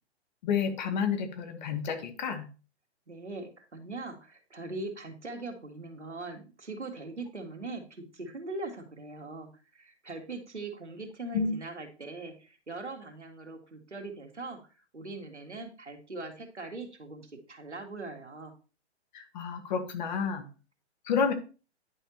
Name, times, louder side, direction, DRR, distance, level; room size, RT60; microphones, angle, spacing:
voice 1, 0.4-2.5 11.3-11.5 19.1-20.5 21.1-21.3, left 6 dB, 40° left, 6 dB, 1.4 m, -30 dB
voice 2, 3.1-14.6 14.9-18.5, right 2 dB, 80° right, 3 dB, 1.9 m, -41 dB
10.0 x 5.7 x 3.0 m, 0.34 s
figure-of-eight pair, 120°, 34 cm